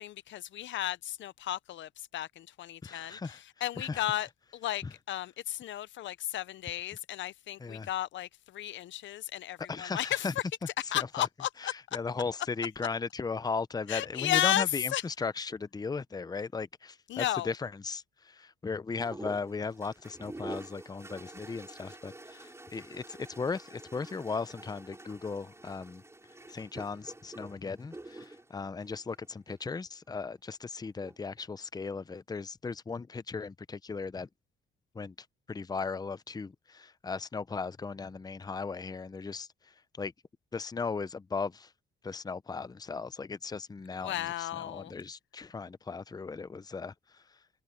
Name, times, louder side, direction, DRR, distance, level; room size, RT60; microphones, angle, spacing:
voice 1, 0.0-10.3 10.9-12.0 13.9-14.7 14.9-15.0 17.1-17.5 44.0-44.9, left 13 dB, 70° left, 0.6 m, -34 dB
voice 2, 2.8-3.4 3.8-4.1 4.8-4.9 7.6-7.9 9.7-10.3 10.9-11.3 11.6-26.0 26.5-34.3 34.9-35.1 35.5-40.1 40.5-41.7 42.0-47.4, left 4 dB, 20° left, 0.6 m, -37 dB
sound 1, 19.0-29.7 30.8-31.4, right 2 dB, 15° right, 6.0 m, -47 dB
cardioid pair, 90°, 20 cm